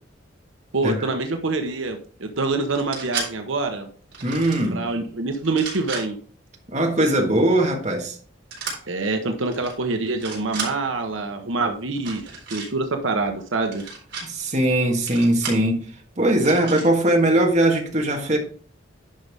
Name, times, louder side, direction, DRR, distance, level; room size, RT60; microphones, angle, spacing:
voice 1, 0.7-3.9 4.7-6.2 8.9-13.8, right 3 dB, 80° right, 1.0 m, -26 dB
sound 1, 2.7-3.3 4.1-4.7 5.4-6.0 8.5-8.8 9.5-9.7 10.1-10.7 12.0-12.7 13.7-14.3 15.1-15.6 16.4-16.9, right 5 dB, 55° right, 4.1 m, -33 dB
voice 2, 4.2-4.8 6.7-8.1 14.2-15.8 16.2-18.4, right 1 dB, 35° right, 1.6 m, -20 dB
10.5 x 5.3 x 3.5 m
head